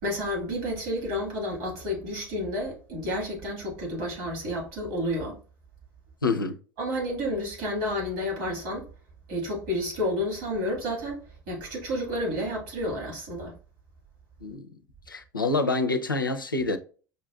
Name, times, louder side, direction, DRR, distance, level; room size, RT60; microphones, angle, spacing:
voice 1, 0.0-5.4 6.8-8.9 9.3-13.6, left 1 dB, 65° right, 1.7 m, -30 dB
voice 2, 6.2-6.6 14.4-14.7 15.1-16.8, left 3 dB, 90° left, 0.4 m, -27 dB
5.3 x 2.5 x 2.3 m
figure-of-eight pair, 70°, 11 cm